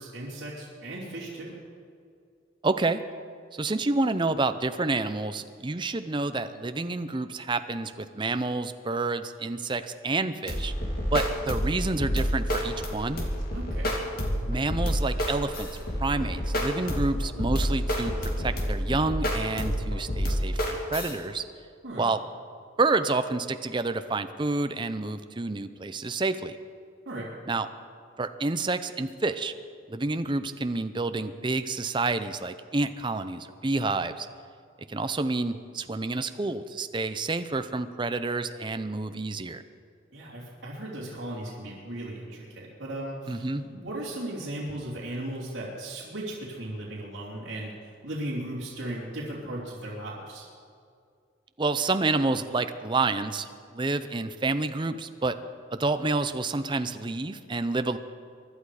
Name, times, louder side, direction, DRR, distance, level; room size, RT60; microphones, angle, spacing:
voice 1, 0.0-1.6 13.5-14.0 21.8-22.1 27.0-27.3 40.1-50.5, right 1 dB, 65° right, -8 dB, 3.2 m, -37 dB
voice 2, 2.6-3.0 3.5-10.7 11.1-13.2 14.5-15.7 16.0-21.4 22.0-22.2 22.8-26.6 27.5-27.7 28.2-29.5 29.9-34.3 34.9-39.6 43.3-43.6 51.6-55.3 55.7-58.0, right 3 dB, 25° right, 10 dB, 0.6 m, -29 dB
sound 1, 10.5-21.1, equal, 50° left, 2.4 m, -28 dB
24.0 x 11.5 x 4.9 m, 2.3 s
head